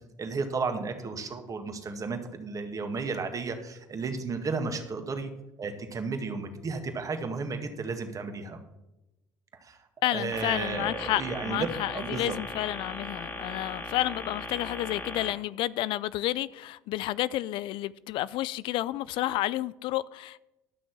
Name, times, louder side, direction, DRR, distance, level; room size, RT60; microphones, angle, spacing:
voice 1, 0.2-5.3 5.6-8.6 9.6-9.8 10.1-12.4, right 4 dB, 35° right, 1.9 m, -33 dB
voice 2, 10.0-20.4, left 15 dB, 65° left, 0.4 m, -30 dB
sound 1, 10.3-15.3, left 2 dB, 25° left, 2.4 m, -38 dB
12.5 x 6.2 x 6.0 m
hypercardioid pair, 65°, 9 cm